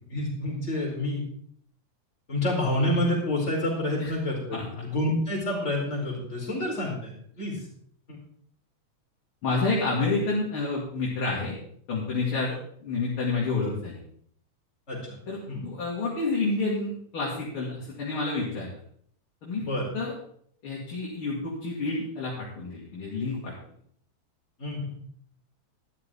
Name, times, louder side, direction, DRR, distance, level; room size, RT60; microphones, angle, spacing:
voice 1, 0.1-1.2 2.3-7.7 8.1-8.2 14.9-15.1 15.4-15.6 19.7-19.9 24.6-24.9, left 1 dB, 20° left, -4 dB, 4.6 m, -28 dB
voice 2, 9.4-11.6 11.9-12.5 12.8-14.0 15.3-15.4 15.6-18.7 19.4-19.6 19.9-20.1 20.6-23.5, left 3 dB, 45° left, -5 dB, 3.2 m, -29 dB
12.5 x 12.0 x 3.8 m, 0.63 s
omnidirectional pair, 3.3 m